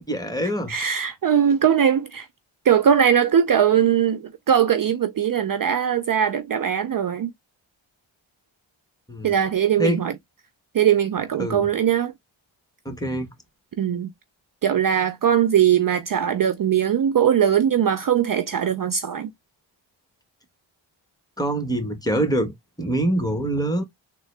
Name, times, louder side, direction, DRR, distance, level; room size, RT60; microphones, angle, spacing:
voice 1, 0.1-0.8 9.1-9.4 9.8-10.0 11.4-11.7 12.8-13.3 21.4-23.8, right 1 dB, 10° left, 1.2 m, -25 dB
voice 2, 0.7-2.3 2.6-7.3 9.2-10.1 10.7-12.1 13.8-14.1 14.6-19.3, right 9 dB, 45° right, 0.5 m, -20 dB
3.6 x 2.2 x 3.2 m
cardioid pair, 50°, 48 cm